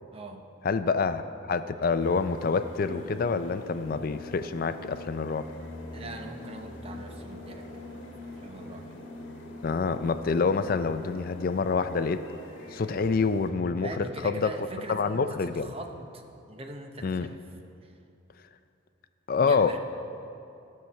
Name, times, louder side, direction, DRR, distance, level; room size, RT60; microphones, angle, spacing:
voice 1, 0.1-0.5 5.9-8.9 13.8-16.2 16.5-17.4 17.8-17.9 19.3-19.8, right 2 dB, 30° right, 4 dB, 0.7 m, -42 dB
voice 2, 0.6-1.2 1.5-5.5 9.6-12.2 12.7-14.5 14.9-15.7 17.0-17.3 19.3-19.8, left 4 dB, 50° left, 11 dB, 0.4 m, -27 dB
sound 1, 2.0-13.5, left 1 dB, 70° left, 1.4 m, -43 dB
12.5 x 5.8 x 6.7 m, 2.7 s
head